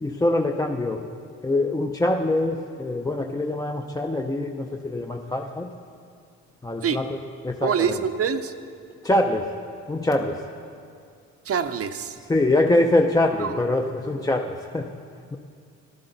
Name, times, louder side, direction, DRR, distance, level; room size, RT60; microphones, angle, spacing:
voice 1, 0.0-1.1 1.4-5.7 6.6-8.0 9.0-9.5 9.9-10.5 12.3-14.9, left 1 dB, 10° left, 3 dB, 0.5 m, -24 dB
voice 2, 7.6-8.5 11.5-12.2 13.4-13.5, right 7 dB, 50° right, 11 dB, 0.7 m, -25 dB
14.0 x 11.5 x 3.9 m, 2.3 s
cardioid pair, 90°, 30 cm